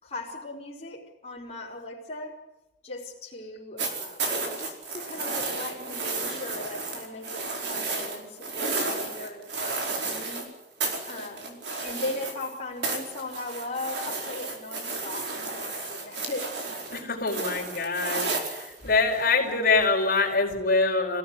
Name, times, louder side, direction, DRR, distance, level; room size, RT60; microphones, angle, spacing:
voice 1, 0.0-2.4 2.8-10.5 11.1-16.7, left 2 dB, 35° left, -4 dB, 4.9 m, -38 dB
sound 1, 3.8-10.5 10.8-12.5 12.8-19.2 20.3-20.4, right 3 dB, 70° right, 4.7 m, -32 dB
voice 2, 16.9-21.2, left 3 dB, 55° left, -1 dB, 4.9 m, -25 dB
26.5 x 17.0 x 9.9 m, 0.97 s
head